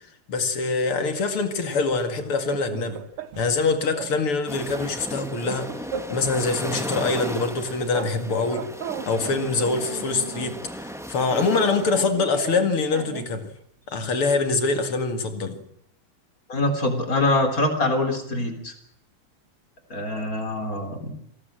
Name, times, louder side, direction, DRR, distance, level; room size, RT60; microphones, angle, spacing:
voice 1, 0.3-3.0 3.4-8.6 9.1-13.4 13.9-15.6, left 3 dB, 75° left, 7 dB, 3.1 m, -24 dB
sound 1, 2.3-3.6 3.9-4.2 4.4-6.3 6.6-8.2 8.4-10.6 11.4-13.4, right 7 dB, 85° right, 2.3 m, -37 dB
sound 2, 4.5-12.0, equal, ahead, 1.0 m, -36 dB
voice 2, 16.5-18.7 19.9-21.1, left 2 dB, 40° left, 6 dB, 4.1 m, -24 dB
27.0 x 18.5 x 7.6 m, 0.70 s
omnidirectional pair, 2.4 m